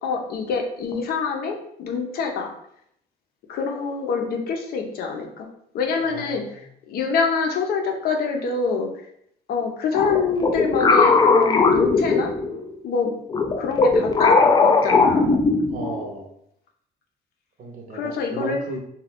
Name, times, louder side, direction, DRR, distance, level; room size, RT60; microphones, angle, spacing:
voice 1, 0.0-2.5 3.5-5.5 5.7-6.6 6.9-8.9 9.5-12.3 12.8-13.2 13.6-14.4 14.8-15.3 17.9-18.6, left 5 dB, 65° left, 2 dB, 0.6 m, -25 dB
voice 2, 6.1-6.6 15.7-16.3 17.6-18.8, right 1 dB, 50° right, 2 dB, 0.7 m, -34 dB
sound 1, 9.9-12.7 13.3-16.0, left 4 dB, 25° left, 0.3 m, -18 dB
2.5 x 2.2 x 3.3 m, 0.71 s
cardioid pair, 110°, 17 cm